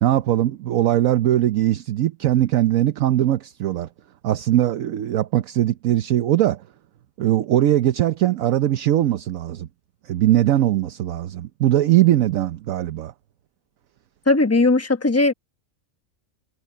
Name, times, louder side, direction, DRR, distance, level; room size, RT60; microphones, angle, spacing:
voice 1, 0.0-3.9 4.2-6.6 7.2-9.7 10.0-13.1, right 13 dB, 70° right, 1.1 m, -20 dB
voice 2, 14.3-15.3, left 2 dB, 10° left, 1.0 m, -18 dB
omnidirectional pair, 1.5 m